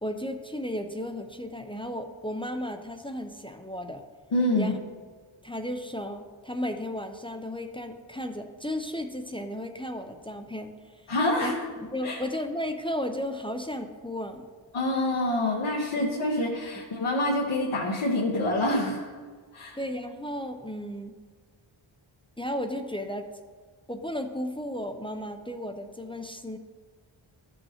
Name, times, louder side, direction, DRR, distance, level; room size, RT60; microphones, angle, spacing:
voice 1, 0.0-4.0 4.5-4.8 5.4-11.1 11.4-14.5 16.0-16.1 19.7-21.2 22.4-23.3 23.9-26.6, left 1 dB, 10° left, 6 dB, 0.5 m, -34 dB
voice 2, 4.3-4.7 11.1-11.6 12.0-12.2 14.7-19.1 19.5-19.8, left 1 dB, 80° left, -3 dB, 1.1 m, -26 dB
13.0 x 5.5 x 2.8 m, 1.5 s
wide cardioid pair, 85°, 49 cm